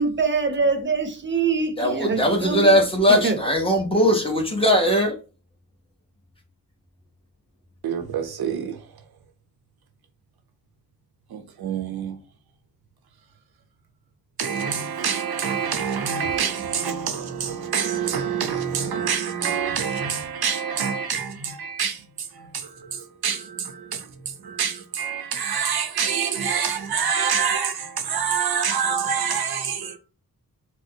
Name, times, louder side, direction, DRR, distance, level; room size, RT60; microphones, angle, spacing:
voice 1, 0.0-2.8 3.1-3.4, right 4 dB, 30° right, 0.6 m, -24 dB
voice 2, 1.8-5.1, equal, 15° left, 0.8 m, -19 dB
voice 3, 7.8-9.0 11.3-12.2 14.4-30.0, right 7 dB, 80° right, 0.6 m, -26 dB
4.3 x 2.0 x 2.7 m
wide cardioid pair, 110°, 37 cm